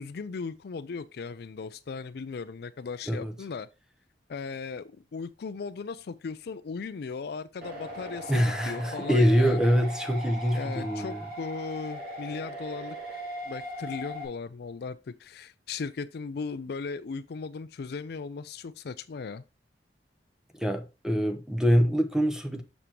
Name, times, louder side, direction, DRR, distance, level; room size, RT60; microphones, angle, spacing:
voice 1, 0.0-3.7 4.3-9.7 10.5-13.0 13.5-19.4, left 5 dB, 65° left, 0.4 m, -37 dB
sound 1, 7.6-14.3, equal, 60° right, 3.2 m, -39 dB
voice 2, 8.3-11.2 20.6-22.6, equal, 5° right, 0.8 m, -24 dB
6.8 x 6.1 x 2.8 m
head